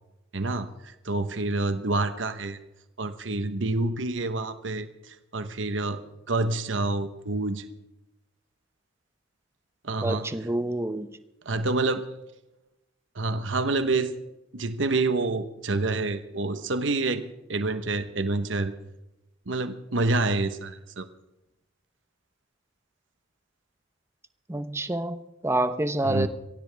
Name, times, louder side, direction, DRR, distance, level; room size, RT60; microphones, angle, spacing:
voice 1, 0.3-2.6 3.0-6.0 6.3-7.7 9.8-10.3 11.4-12.1 13.1-14.1 14.5-17.2 17.5-18.7 19.5-21.1 26.0-26.3, right 2 dB, 85° right, 9 dB, 1.1 m, -27 dB
voice 2, 10.0-11.2 24.5-26.3, right 1 dB, 15° right, 10 dB, 0.9 m, -28 dB
23.5 x 17.0 x 3.5 m, 0.93 s
head